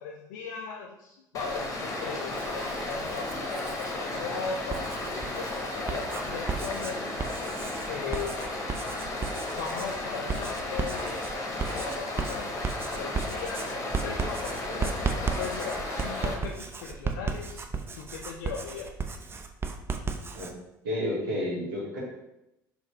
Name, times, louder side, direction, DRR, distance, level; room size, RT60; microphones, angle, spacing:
voice 1, 0.0-7.1 7.9-8.6 9.6-11.3 11.7-13.7 14.0-17.6 18.0-18.9, left 6 dB, 65° left, 0 dB, 0.4 m, -38 dB
Stream, 1.3-16.3, left 2 dB, 30° left, 1.0 m, -34 dB
Writing, 2.3-3.9 4.5-20.5, right 5 dB, 20° right, 0.4 m, -35 dB
voice 2, 20.8-22.0, left 1 dB, 70° right, -5 dB, 1.5 m, -30 dB
4.2 x 3.1 x 3.0 m, 0.89 s
figure-of-eight pair, 60°, 11 cm